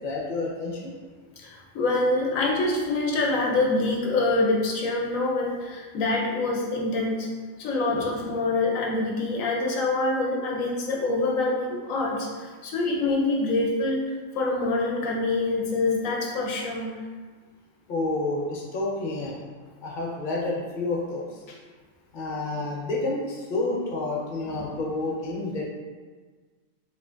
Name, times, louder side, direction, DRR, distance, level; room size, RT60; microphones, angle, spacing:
voice 1, 0.0-0.9 17.9-19.4 19.8-21.4 22.1-25.6, left 2 dB, 45° left, -3 dB, 0.8 m, -29 dB
voice 2, 1.4-7.3 7.6-14.0 14.3-17.0 24.5-24.8, left 2 dB, 75° left, -1 dB, 1.0 m, -25 dB
4.9 x 3.1 x 2.4 m, 1.4 s
omnidirectional pair, 1.4 m